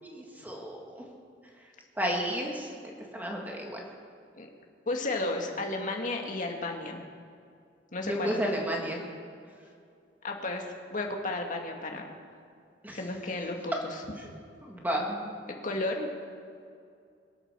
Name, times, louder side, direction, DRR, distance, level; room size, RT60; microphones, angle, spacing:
voice 1, 0.0-1.0 2.0-2.7 3.1-3.8 8.1-9.0 12.8-13.0 14.2-14.3 14.6-15.3, equal, 10° right, -1 dB, 2.1 m, -32 dB
voice 2, 4.9-7.0 7.9-8.4 10.2-10.6 10.9-12.1 12.9-13.8 15.6-16.1, left 2 dB, 45° left, 2 dB, 2.0 m, -33 dB
23.0 x 8.9 x 6.8 m, 2.3 s
head